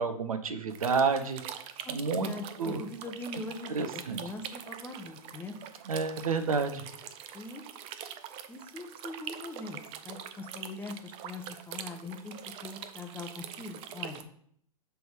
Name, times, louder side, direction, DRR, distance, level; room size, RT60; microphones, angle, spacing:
voice 1, 0.0-1.4 1.9-2.3 2.6-2.8 3.7-4.2 5.9-6.8, right 4 dB, 75° right, 9 dB, 0.7 m, -29 dB
sound 1, 0.7-14.2, right 9 dB, 30° right, 0.5 m, -44 dB
voice 2, 1.8-5.6 7.3-7.6 8.5-9.8 10.0-14.3, left 3 dB, 10° left, 4 dB, 0.7 m, -42 dB
5.9 x 3.4 x 5.1 m, 0.65 s
figure-of-eight pair, 105°, 18 cm